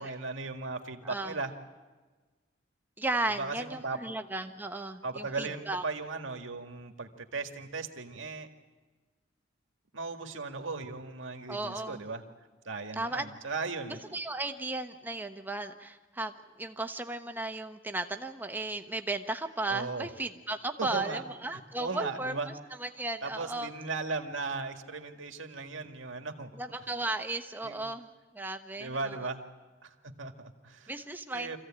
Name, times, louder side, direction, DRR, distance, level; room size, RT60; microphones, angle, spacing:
voice 1, 0.0-1.5 3.4-4.0 5.0-8.5 9.9-12.2 12.6-14.0 19.7-20.1 20.8-21.2 21.5-22.5 23.2-26.5 27.6-27.8 28.8-29.4 29.8-30.9 31.3-31.6, right 3 dB, 85° right, 5 dB, 1.9 m, -37 dB
voice 2, 1.0-1.4 3.0-5.8 11.5-12.0 12.9-13.3 14.1-23.7 26.6-28.1 28.3-29.2 30.9-31.6, right 2 dB, 10° right, 7 dB, 1.0 m, -35 dB
25.5 x 15.5 x 8.8 m, 1.3 s
head